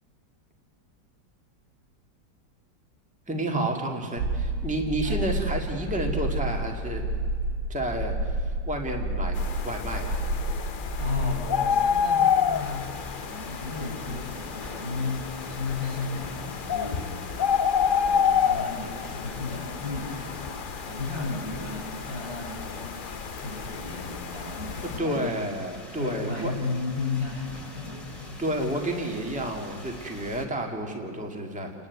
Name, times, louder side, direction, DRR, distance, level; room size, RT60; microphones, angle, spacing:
voice 1, 3.3-7.0 7.7-8.4 8.7-9.4 9.6-10.2 25.0-26.5 28.4-31.7, right 1 dB, 5° right, 2 dB, 1.9 m, -30 dB
sound 1, 4.2-11.4, right 1 dB, 65° right, 1.8 m, -29 dB
sound 2, 9.3-25.0, left 7 dB, 70° left, 0.4 m, -29 dB
voice 2, 11.0-17.1 17.8-20.4 20.8-22.9 23.3-25.4 26.0-28.6, left 3 dB, 85° right, -3 dB, 7.1 m, -34 dB
sound 3, 12.5-30.5, left 2 dB, 20° left, 2.4 m, -45 dB
29.5 x 10.5 x 9.4 m, 2.2 s
omnidirectional pair, 1.9 m